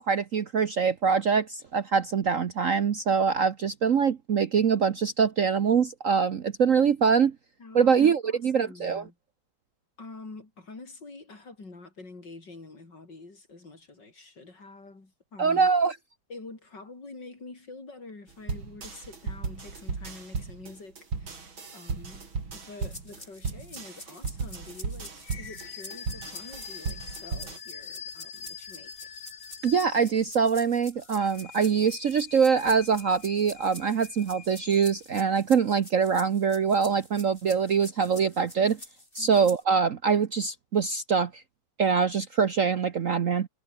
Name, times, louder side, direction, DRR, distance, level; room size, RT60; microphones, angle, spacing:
voice 1, 0.0-7.3 7.7-9.0 15.4-15.9 29.6-38.8 39.1-41.3 41.8-43.5, right 6 dB, 50° right, 1.1 m, -24 dB
voice 2, 7.6-7.9 8.2-9.2 10.0-15.7 16.3-21.4 21.7-22.3 22.5-28.9 39.2-39.4, left 3 dB, 60° left, 5.5 m, -46 dB
sound 1, 18.5-27.6, right 4 dB, 85° right, 4.5 m, -36 dB
sound 2, 22.8-39.6, left 1 dB, 25° left, 7.6 m, -47 dB
sound 3, 25.2-30.5 31.0-35.2, left 8 dB, 80° left, 2.6 m, -45 dB
omnidirectional pair, 2.1 m